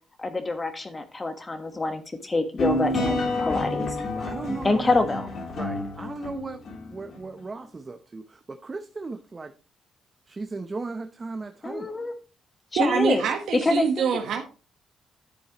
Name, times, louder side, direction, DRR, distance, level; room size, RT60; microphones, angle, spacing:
voice 1, 0.2-4.0 4.6-5.3 11.6-12.1 12.7-13.2 13.5-14.1, left 3 dB, 25° left, 8 dB, 1.3 m, -26 dB
sound 1, 2.6-7.1, left 1 dB, 60° left, 2.9 m, -29 dB
voice 2, 4.2-5.0 5.5-6.6 6.9-9.5 10.3-12.0, right 3 dB, 30° right, 8 dB, 0.7 m, -36 dB
voice 3, 12.8-14.4, right 7 dB, 75° right, 3 dB, 1.3 m, -25 dB
10.0 x 7.1 x 3.0 m, 0.34 s
cardioid pair, 90°, 0 cm